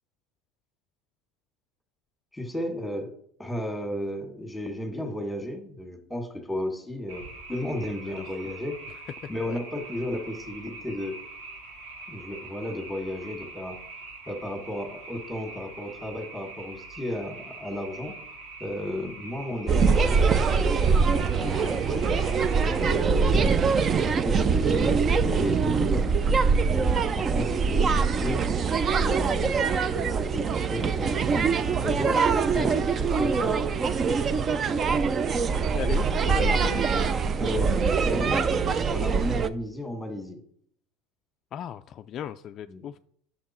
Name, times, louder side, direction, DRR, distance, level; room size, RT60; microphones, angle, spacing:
voice 1, 2.3-3.1 3.4-8.8 9.3-11.2 12.1-13.8 14.3-18.2 18.6-22.3 22.6-23.8 24.1-26.3 26.7-26.9 27.2-28.4 29.0-31.4 31.8-33.6 35.4-35.6 37.4-38.5 38.9-40.4 42.7-42.9, left 1 dB, ahead, 3 dB, 1.9 m, -34 dB
sound 1, 7.1-23.0, right 3 dB, 85° right, 2.4 m, -44 dB
voice 2, 9.2-9.6 32.5-32.8 35.7-37.0 41.5-43.0, left 9 dB, 40° left, 9 dB, 0.3 m, -36 dB
sound 2, 19.7-39.5, right 5 dB, 30° right, 0.5 m, -23 dB
9.5 x 6.6 x 4.4 m, 0.65 s
supercardioid pair, 135°, 0 cm